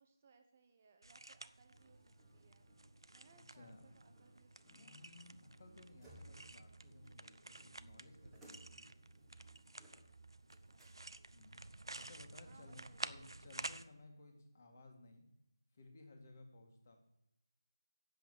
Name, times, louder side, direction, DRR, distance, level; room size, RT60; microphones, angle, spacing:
voice 1, 0.0-2.0 2.3-2.7 3.1-5.0 10.7-11.2 12.4-13.1, right 4 dB, 25° right, 5 dB, 1.0 m, -67 dB
sound 1, 1.0-13.8, right 2 dB, 90° right, 0.6 m, -52 dB
sound 2, 1.7-11.4, equal, 5° right, 1.3 m, -65 dB
voice 2, 3.5-4.2 4.7-8.9 11.3-11.6 11.9-15.3 15.7-17.0, left 2 dB, 30° left, 3 dB, 2.0 m, -59 dB
sound 3, 5.0-12.7, right 3 dB, 45° right, 0.6 m, -63 dB
8.4 x 7.7 x 8.2 m, 0.84 s
figure-of-eight pair, 175°, 2 cm